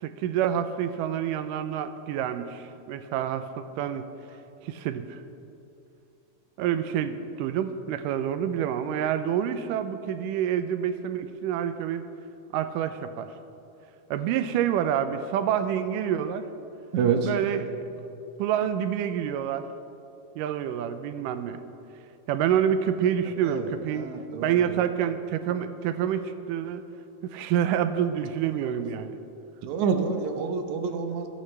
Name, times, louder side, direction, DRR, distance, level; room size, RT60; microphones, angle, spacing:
voice 1, 0.0-4.0 4.6-5.2 6.6-12.0 12.5-13.3 14.1-16.5 17.2-18.0 18.4-19.7 20.4-21.6 22.3-24.1 24.4-26.8 27.2-29.2, right 9 dB, 85° right, 10 dB, 2.2 m, -27 dB
voice 2, 16.9-17.3 23.4-23.7 24.0-24.6 28.6-28.7 29.6-31.3, right 6 dB, 70° right, 5 dB, 2.2 m, -27 dB
22.0 x 9.9 x 3.3 m, 2.7 s
omnidirectional pair, 3.8 m